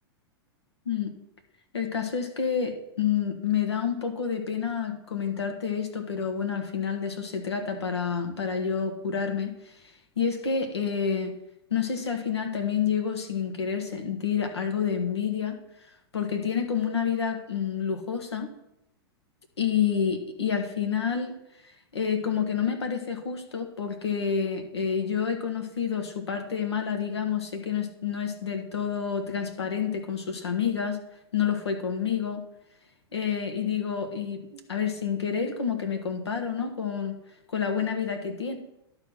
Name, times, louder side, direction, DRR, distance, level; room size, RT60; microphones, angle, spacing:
voice 1, 1.7-9.5 10.2-11.4 11.7-15.6 16.1-18.5 19.6-21.4 21.9-31.0 31.3-32.4 33.1-37.2 37.5-38.6, left 7 dB, 85° left, 5 dB, 1.5 m, -28 dB
11.5 x 4.1 x 5.9 m, 0.82 s
hypercardioid pair, 110°, 13 cm